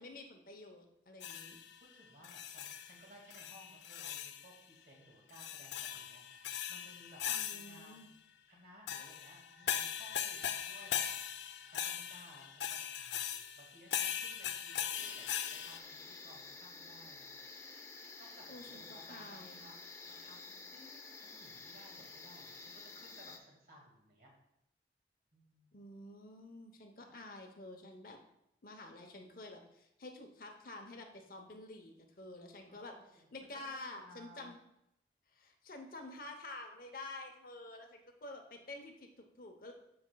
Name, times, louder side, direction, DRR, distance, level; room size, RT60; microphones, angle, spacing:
voice 1, 0.0-1.6 7.3-8.1 18.5-19.7 25.7-28.2 28.6-32.9 33.3-34.6 35.3-39.7, left 2 dB, 50° left, 4 dB, 0.8 m, -49 dB
sound 1, 1.2-1.8 2.2-3.0 3.3-4.5 5.3-8.0 8.9-15.8, left 9 dB, 80° left, 0.5 m, -39 dB
voice 2, 1.8-8.1 8.5-17.4 17.8-24.3 25.3-25.8 27.2-27.3 32.7-34.5, equal, 50° right, -1 dB, 1.8 m, -60 dB
sound 2, 14.9-23.4, left 4 dB, 15° left, 0.5 m, -51 dB
12.5 x 5.1 x 2.3 m, 0.82 s
head